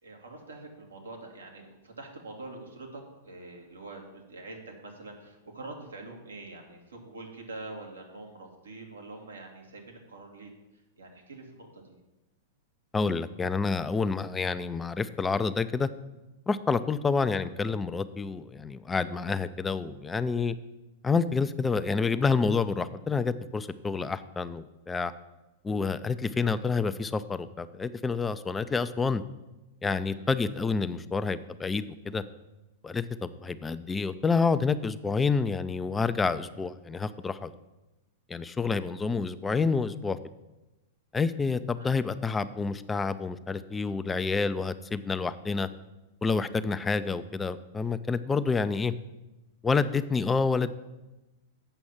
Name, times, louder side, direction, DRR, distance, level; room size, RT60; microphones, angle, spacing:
voice 1, 0.0-10.5 11.0-12.0 30.1-30.3 41.8-41.9, right 2 dB, 90° right, 1 dB, 2.1 m, -45 dB
voice 2, 12.9-15.9 16.5-20.6 21.0-25.1 25.6-29.2 29.8-32.2 32.8-37.5 38.3-40.2 41.1-45.7 46.2-48.9 49.6-50.7, left 4 dB, 15° left, 13 dB, 0.5 m, -28 dB
7.9 x 6.1 x 7.3 m, 1.0 s
hypercardioid pair, 105°, 0 cm